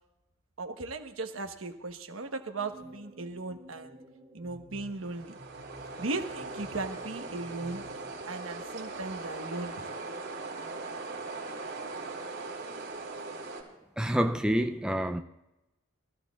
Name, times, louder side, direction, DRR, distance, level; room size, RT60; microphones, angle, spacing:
voice 1, 0.6-4.0 4.3-5.3 6.0-7.8 8.3-9.9, right 3 dB, 75° right, 1.2 m, -37 dB
sound 1, 2.6-8.2, right 1 dB, 30° right, 2.2 m, -52 dB
sound 2, 4.9-13.6, right 3 dB, 60° right, 4.0 m, -40 dB
voice 2, 14.0-15.2, right 1 dB, 5° right, 0.4 m, -27 dB
25.5 x 14.5 x 2.4 m
head